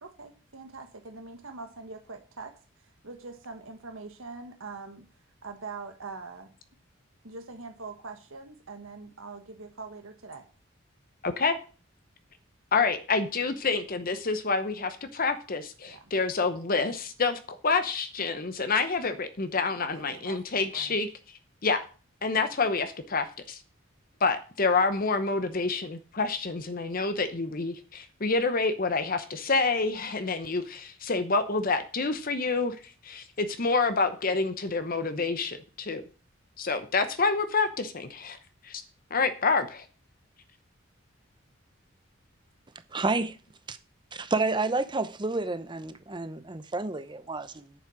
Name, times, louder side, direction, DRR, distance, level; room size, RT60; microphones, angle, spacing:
voice 1, 0.0-2.5 2.8-5.0 5.4-6.5 7.2-10.5 15.9-16.1 19.7-21.0, right 4 dB, 90° right, 1.4 m, -43 dB
voice 2, 11.2-11.6 12.7-21.1 21.6-21.8 22.2-23.6 24.2-32.8 33.0-36.0 36.6-38.4 38.6-38.8 39.1-39.8, left 4 dB, 45° left, 0.9 m, -28 dB
voice 3, 42.9-43.4 43.7-43.8 44.1-47.7, right 3 dB, 25° right, 0.8 m, -30 dB
9.2 x 7.3 x 6.1 m
head